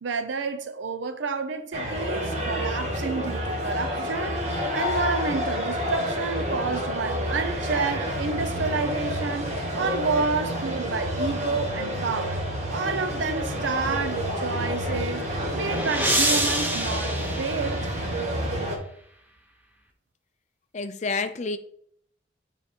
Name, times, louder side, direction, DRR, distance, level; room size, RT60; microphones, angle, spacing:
voice 1, 0.0-4.4 4.7-9.5 9.8-12.4 12.7-15.2 15.5-17.9, right 4 dB, 80° right, 0.6 m, -29 dB
sound 1, 1.7-18.8, equal, 35° right, 1.2 m, -29 dB
sound 2, 15.2-18.3, right 1 dB, 10° right, 0.7 m, -28 dB
voice 2, 20.7-21.6, left 4 dB, 40° left, 0.5 m, -29 dB
6.9 x 3.5 x 4.5 m
head